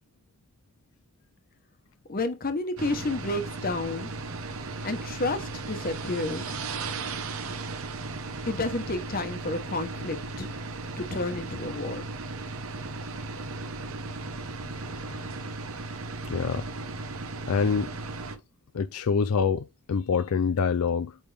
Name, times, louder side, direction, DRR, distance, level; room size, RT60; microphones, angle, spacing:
voice 1, 2.1-4.1 4.8-6.6 8.4-10.5 11.0-12.1, left 2 dB, 40° left, 1.0 m, -31 dB
sound 1, 2.8-18.4, right 3 dB, 65° right, 0.9 m, -36 dB
voice 2, 14.9-15.3 16.3-16.6 17.5-17.9 18.7-21.2, left 5 dB, 70° left, 0.4 m, -26 dB
8.8 x 3.5 x 3.4 m
head